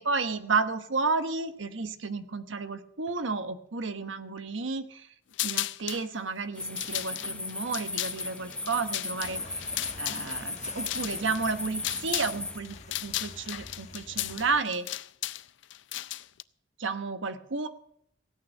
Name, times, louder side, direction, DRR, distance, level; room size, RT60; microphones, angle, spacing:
voice 1, 0.0-5.1 5.4-9.7 10.0-14.9 16.8-17.7, right 4 dB, 85° right, 10 dB, 1.1 m, -32 dB
sound 1, 5.3-6.1 6.6-12.4 12.6-16.4, left 15 dB, 70° left, 0.4 m, -35 dB
sound 2, 6.5-12.6, left 2 dB, 5° left, 0.8 m, -37 dB
sound 3, 9.2-14.6, left 3 dB, 40° left, 1.4 m, -47 dB
16.5 x 9.0 x 6.5 m, 0.71 s
head